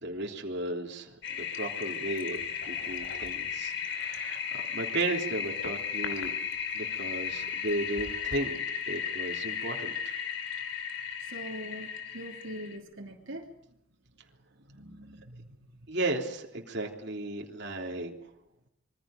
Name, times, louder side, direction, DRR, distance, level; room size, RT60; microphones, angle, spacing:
voice 1, 0.0-6.3 6.7-8.6 8.8-10.1 15.9-18.2, right 2 dB, 50° right, 0 dB, 3.4 m, -35 dB
Toilet flush, 1.2-12.8, left 7 dB, 60° left, 3.1 m, -35 dB
voice 2, 3.5-3.9 11.2-13.5 14.5-15.9, equal, 70° right, 1 dB, 3.0 m, -44 dB
26.5 x 23.0 x 5.2 m, 0.81 s
head